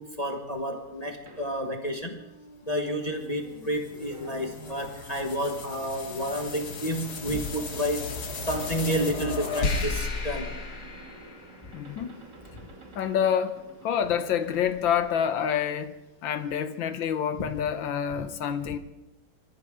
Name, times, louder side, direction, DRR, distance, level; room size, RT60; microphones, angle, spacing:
voice 1, 0.0-2.2 2.6-8.1 8.4-10.6 17.4-17.5, equal, 25° left, 1.1 m, -30 dB
sound 1, 1.3-16.0, right 3 dB, 55° right, 3.0 m, -49 dB
sound 2, 3.2-11.8, left 3 dB, 50° left, 1.9 m, -35 dB
voice 2, 11.7-12.2 12.9-15.9 16.2-18.8, left 8 dB, 65° left, 1.7 m, -27 dB
25.5 x 14.5 x 3.7 m
omnidirectional pair, 2.4 m